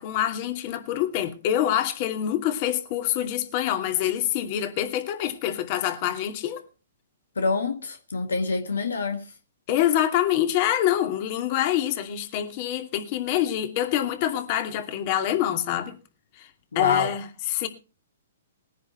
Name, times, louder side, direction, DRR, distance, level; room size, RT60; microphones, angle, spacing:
voice 1, 0.0-6.6 9.7-16.0 16.4-16.5 16.7-17.7, left 11 dB, 45° left, 2.6 m, -26 dB
voice 2, 7.4-9.2 16.7-17.1, left 4 dB, 85° left, 1.8 m, -26 dB
20.0 x 10.5 x 4.5 m
hypercardioid pair, 130°, 0 cm